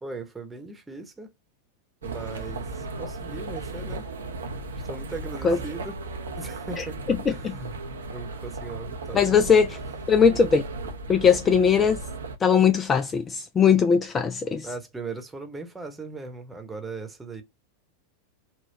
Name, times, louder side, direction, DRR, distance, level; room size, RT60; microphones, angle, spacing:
voice 1, 0.0-1.3 2.0-4.1 4.8-6.0 6.4-7.0 7.3-7.8 8.1-9.4 10.6-10.7 14.6-17.4, right 3 dB, 10° right, 1.0 m, -38 dB
sound 1, 2.0-12.4, right 2 dB, 70° right, 0.7 m, -36 dB
voice 2, 9.1-9.8 10.1-10.6 11.1-12.0 12.4-14.7, left 6 dB, 20° left, 0.4 m, -20 dB
4.1 x 2.2 x 2.8 m
figure-of-eight pair, 90°, 0 cm